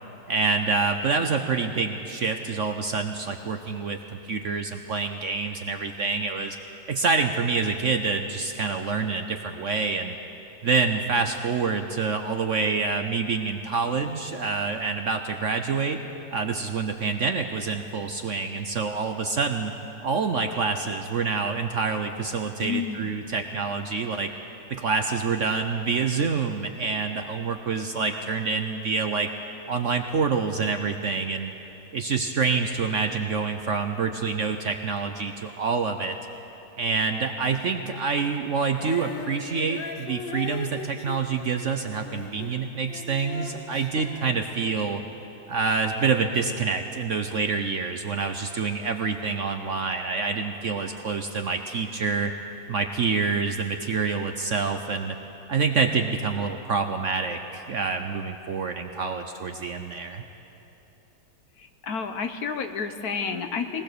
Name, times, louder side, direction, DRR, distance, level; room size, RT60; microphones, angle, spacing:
voice 1, 0.3-6.6 6.9-10.2 10.6-16.0 16.3-19.7 20.0-24.3 24.7-29.3 29.7-31.5 31.9-36.2 36.8-45.0 45.5-52.3 52.7-55.2 55.5-60.2, right 4 dB, 55° right, 6 dB, 0.9 m, -27 dB
voice 2, 22.6-23.1 61.6-63.8, left 5 dB, 60° left, 7 dB, 1.3 m, -30 dB
Female singing, 38.7-45.1 45.8-45.9, left 5 dB, 85° left, 1.9 m, -39 dB
20.5 x 19.5 x 6.8 m, 3.0 s
omnidirectional pair, 1.9 m